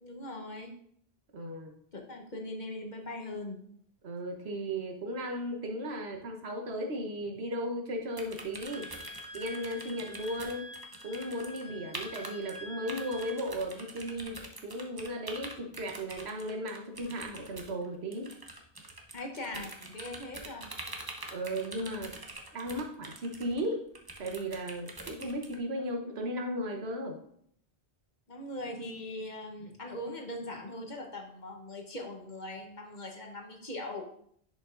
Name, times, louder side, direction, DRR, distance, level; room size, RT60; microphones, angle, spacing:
voice 1, 0.0-0.7 1.9-3.6 19.1-20.7 28.3-34.0, left 1 dB, 45° left, 2 dB, 1.1 m, -40 dB
voice 2, 1.3-1.7 4.0-8.9 9.3-10.7 11.0-18.3 21.3-22.2 22.5-23.8 24.2-27.2, equal, 75° right, 3 dB, 1.3 m, -36 dB
sound 1, 8.2-11.6 11.9-12.6 12.9-25.6, right 2 dB, 25° right, 0.7 m, -45 dB
Wind instrument woodwind instrument, 8.7-13.4, left 1 dB, 45° right, 1.6 m, -47 dB
10.5 x 5.3 x 2.5 m, 0.66 s
omnidirectional pair, 1.1 m